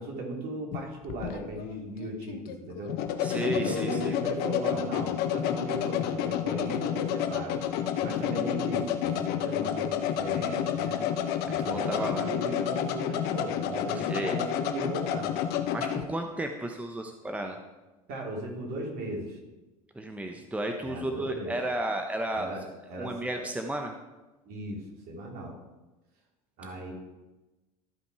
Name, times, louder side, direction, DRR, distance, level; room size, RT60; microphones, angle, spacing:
voice 1, 0.0-2.9 3.5-7.6 8.0-11.0 11.5-15.3 18.1-19.4 20.8-21.6 22.3-23.4 24.4-25.5 26.6-26.9, right 1 dB, 55° right, -1 dB, 3.2 m, -37 dB
sound 1, 0.7-16.0, left 9 dB, 60° left, 0.9 m, -30 dB
voice 2, 3.2-4.1 11.6-12.3 14.1-14.4 15.7-17.6 19.9-22.5 23.0-23.9, right 1 dB, 5° right, 4 dB, 0.9 m, -33 dB
14.0 x 5.2 x 4.8 m, 1.1 s
hypercardioid pair, 80°, 19 cm